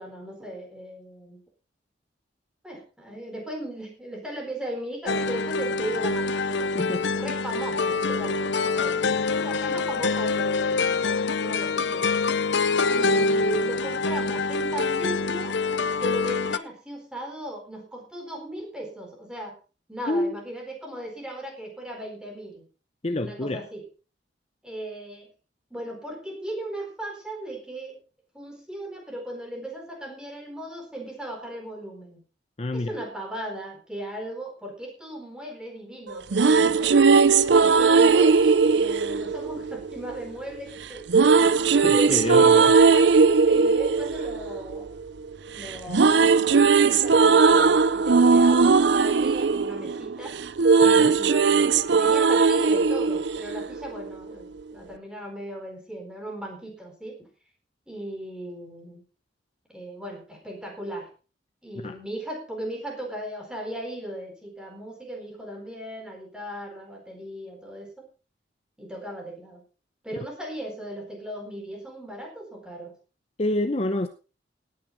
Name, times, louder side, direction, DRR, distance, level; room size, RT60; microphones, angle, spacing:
voice 1, 0.0-1.4 2.6-6.8 7.1-12.2 12.9-15.6 16.0-19.6 19.9-22.7 23.2-23.8 24.6-25.3 25.7-28.0 28.3-32.2 32.7-37.0 37.5-44.9 45.5-50.4 51.1-57.3 57.9-59.0 59.7-61.1 61.6-68.1 68.8-69.6 70.0-72.9, right 1 dB, 5° right, 1 dB, 4.3 m, -37 dB
sound 1, 5.1-16.6, left 4 dB, 70° left, 0.7 m, -25 dB
voice 2, 20.1-20.4 23.0-23.6 32.6-32.9 41.8-42.7 50.8-51.2 61.7-62.0 73.4-74.1, left 1 dB, 35° left, 8 dB, 0.8 m, -27 dB
sound 2, 36.1-40.2 41.1-45.3 45.6-54.1, right 5 dB, 65° right, 0.6 m, -19 dB
18.0 x 9.5 x 4.0 m, 0.34 s
head